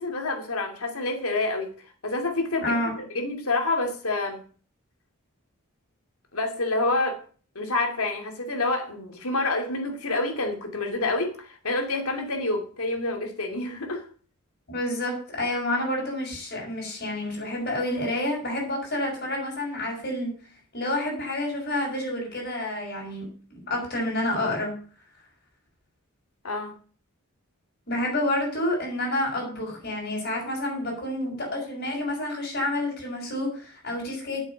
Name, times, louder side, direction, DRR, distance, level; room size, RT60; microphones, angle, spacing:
voice 1, 0.0-1.7 2.0-4.4 6.3-7.2 7.5-14.0 26.4-26.7, left 2 dB, 80° left, 2.7 m, -28 dB
voice 2, 2.6-3.0 14.7-20.4 20.7-24.7 27.9-34.4, left 1 dB, 50° left, 6.4 m, -29 dB
8.7 x 7.4 x 6.9 m
head